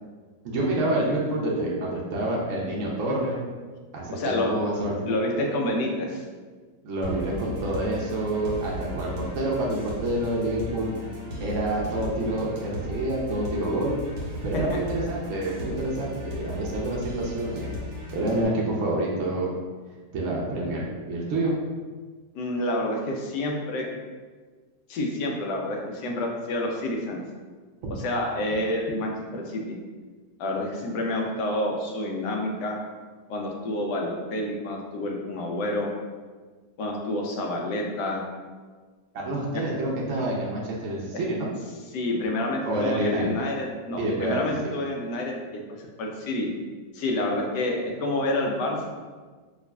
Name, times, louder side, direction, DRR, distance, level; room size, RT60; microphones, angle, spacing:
voice 1, 0.4-3.4 3.9-4.9 6.8-10.9 11.4-13.9 14.4-17.7 18.1-19.5 20.1-21.5 27.8-27.9 39.1-41.5 42.7-43.3 43.9-44.5, right 1 dB, 65° right, -4 dB, 0.8 m, -27 dB
voice 2, 4.1-4.5 5.1-6.2 14.7-14.8 22.3-23.9 24.9-27.2 27.9-29.8 30.4-32.8 33.3-35.9 36.8-38.2 39.5-39.6 41.1-41.2 41.9-45.6 46.0-46.5 46.9-48.9, left 1 dB, 80° left, 0 dB, 1.2 m, -28 dB
sound 1, 7.0-18.4, left 1 dB, 80° right, 1.4 m, -36 dB
4.8 x 2.4 x 2.3 m, 1.4 s
omnidirectional pair, 1.8 m